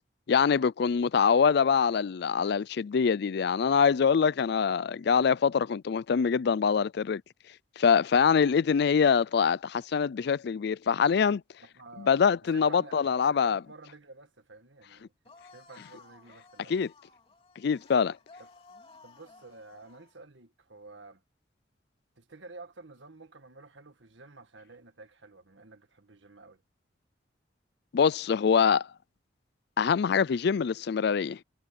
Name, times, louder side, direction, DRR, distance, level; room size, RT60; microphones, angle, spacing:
voice 1, 0.3-7.2 7.8-11.4 12.0-13.6 16.7-16.9 17.6-18.2 27.9-28.9 29.8-31.4, left 6 dB, 60° left, 0.4 m, -24 dB
voice 2, 11.6-12.1 12.4-15.1 15.5-16.7 18.4-18.5 19.0-21.2 22.2-26.6, right 3 dB, 85° right, 1.9 m, -51 dB
sound 1, 15.2-20.1, left 3 dB, 30° left, 3.2 m, -56 dB
head